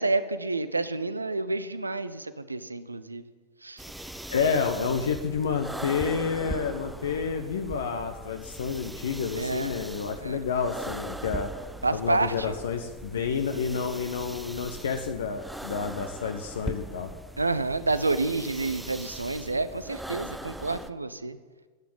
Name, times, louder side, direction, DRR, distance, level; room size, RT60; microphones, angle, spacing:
voice 1, 0.0-3.2 3.6-3.8 9.4-9.7 10.2-10.4 11.8-12.5 17.4-21.4, right 3 dB, 80° right, 13 dB, 0.9 m, -29 dB
sound 1, 3.8-20.9, right 1 dB, 5° right, 0.7 m, -40 dB
voice 2, 4.3-11.5 11.9-17.1, left 6 dB, 65° left, 5 dB, 1.1 m, -29 dB
13.0 x 9.4 x 9.4 m, 1.4 s
figure-of-eight pair, 90°, 0 cm